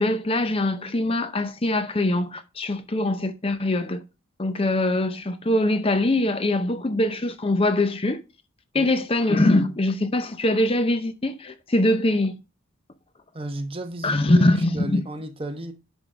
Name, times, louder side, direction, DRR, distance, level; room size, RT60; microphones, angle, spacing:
voice 1, 0.0-4.0 4.4-8.2 8.7-12.4 14.0-15.0, left 1 dB, 30° left, 0.6 m, -22 dB
voice 2, 13.3-15.7, right 1 dB, 25° right, 1.0 m, -33 dB
11.0 x 3.7 x 5.0 m
head